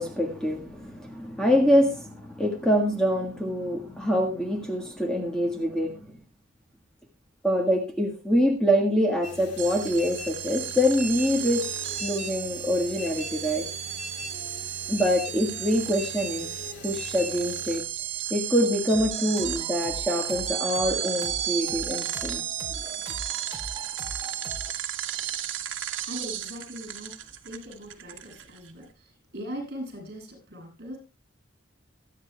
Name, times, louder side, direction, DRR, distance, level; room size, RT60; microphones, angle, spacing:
voice 1, 0.0-6.0 7.4-11.7 12.0-13.6 14.9-16.5 16.8-17.8 18.3-22.4, equal, 5° left, 0 dB, 1.6 m, -25 dB
sound 1, 9.2-17.8, left 3 dB, 60° left, 2.8 m, -42 dB
sound 2, 9.6-28.7, right 11 dB, 75° right, 1.5 m, -34 dB
sound 3, 18.9-24.7, right 2 dB, 25° right, 1.1 m, -41 dB
voice 2, 26.1-31.0, equal, 55° right, 2 dB, 7.4 m, -40 dB
24.0 x 9.3 x 2.3 m, 0.30 s
head